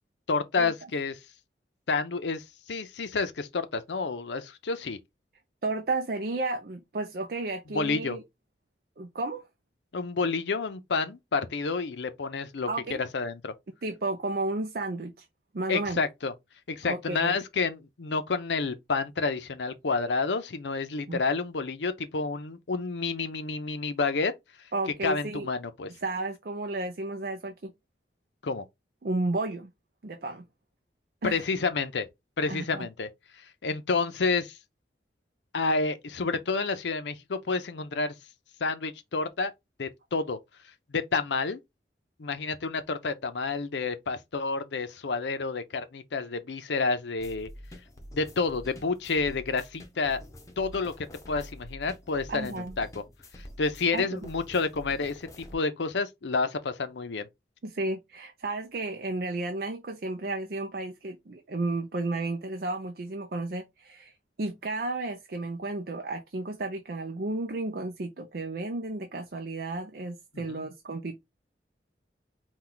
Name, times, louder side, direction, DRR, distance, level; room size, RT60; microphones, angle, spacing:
voice 1, 0.3-1.2 1.9-2.4 2.7-5.0 7.7-8.2 9.9-12.7 13.0-13.5 15.7-16.3 16.7-24.3 25.0-25.9 28.4-28.6 31.2-32.1 32.4-33.1 33.6-34.6 35.5-38.1 38.6-39.5 39.8-40.4 40.9-41.6 42.2-47.5 48.1-50.2 50.6-50.9 51.3-52.5 52.8-52.9 53.6-57.3 70.3-70.6, left 4 dB, 80° left, 0.6 m, -29 dB
voice 2, 5.6-8.2 9.0-9.4 12.7-13.0 13.8-15.3 15.5-16.0 16.8-17.3 21.1-21.2 24.7-25.5 26.0-27.7 29.0-29.7 30.0-30.5 31.2-31.4 32.5-32.9 52.3-52.8 53.9-54.2 57.6-71.2, right 2 dB, 55° right, 0.5 m, -33 dB
sound 1, 47.2-55.5, equal, 20° left, 0.8 m, -47 dB
4.4 x 2.3 x 3.8 m
head